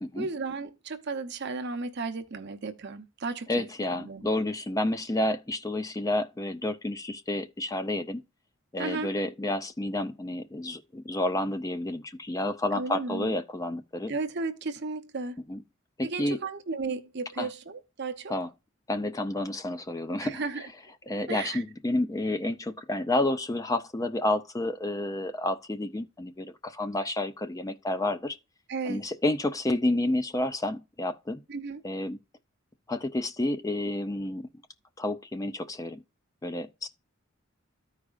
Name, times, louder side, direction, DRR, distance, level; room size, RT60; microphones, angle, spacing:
voice 1, 0.2-4.3 8.8-9.1 12.7-13.3 14.1-15.4 16.0-18.3 20.2-20.7 21.3-21.6 28.7-29.0 31.5-31.8, right 4 dB, 55° right, 0.7 m, -34 dB
voice 2, 3.5-8.2 8.7-14.1 15.5-15.6 16.0-16.4 17.4-17.5 18.3-18.5 18.9-20.4 21.1-28.4 28.8-31.4 31.8-32.2 32.9-34.5 35.0-36.0 36.4-36.9, left 1 dB, 15° left, 0.5 m, -30 dB
14.0 x 4.9 x 2.4 m
head